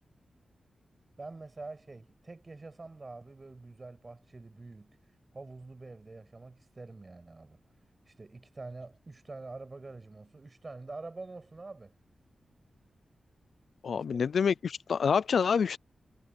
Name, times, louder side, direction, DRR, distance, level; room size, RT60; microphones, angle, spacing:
voice 1, 1.2-5.0 5.3-7.6 8.1-11.9 13.9-14.3, right 3 dB, 30° right, 6.6 m, -46 dB
voice 2, 13.8-15.8, left 6 dB, 75° left, 0.5 m, -27 dB
wide cardioid pair, 135°, 0 cm